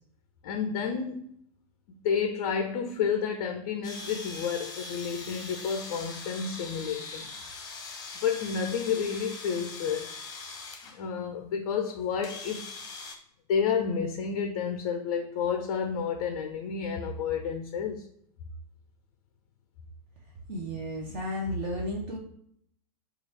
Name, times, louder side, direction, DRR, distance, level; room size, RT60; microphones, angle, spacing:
voice 1, 0.4-1.3 1.9-7.4 8.2-10.1 10.9-12.6 13.5-18.1, left 6 dB, 40° left, 6 dB, 0.4 m, -30 dB
sound 1, 3.8-11.0 11.9-12.0 12.2-13.2, left 3 dB, 20° left, 0.7 m, -41 dB
voice 2, 20.5-22.2, equal, 45° right, -1 dB, 0.7 m, -33 dB
2.9 x 2.4 x 4.1 m, 0.70 s
figure-of-eight pair, 95°, 21 cm